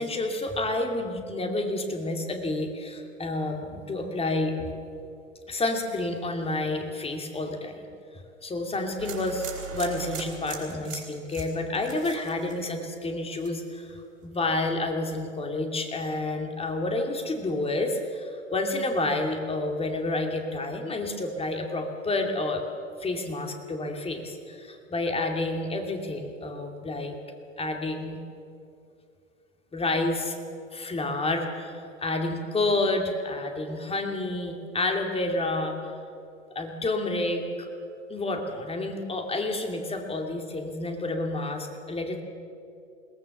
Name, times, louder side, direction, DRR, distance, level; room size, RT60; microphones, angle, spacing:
voice 1, 0.0-4.7 5.5-7.8 8.1-9.5 9.7-14.0 14.2-22.6 23.0-27.1 27.6-28.2 29.7-30.4 30.7-35.9 36.5-37.7 38.1-42.2, left 2 dB, 15° left, 4 dB, 2.6 m, -29 dB
sound 1, 9.0-13.0 13.3-13.8, right 6 dB, 80° right, 4.8 m, -40 dB
21.5 x 18.5 x 7.2 m, 2.5 s
hypercardioid pair, 100°, 39 cm